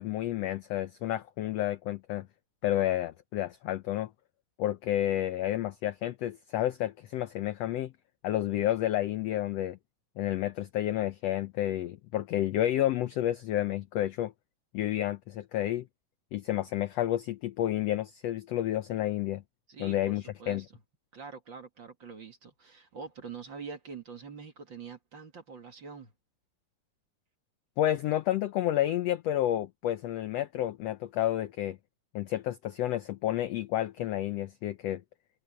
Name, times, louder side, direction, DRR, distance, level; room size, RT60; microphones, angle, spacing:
voice 1, 0.0-2.3 2.6-4.1 4.6-7.9 8.2-9.8 10.2-14.3 14.7-15.9 16.3-19.4 19.8-20.6 27.8-31.8 32.1-35.0, left 13 dB, 75° left, 1.5 m, -30 dB
voice 2, 19.7-20.7 21.1-26.1, right 5 dB, 40° right, 2.6 m, -45 dB
omnidirectional pair, 3.7 m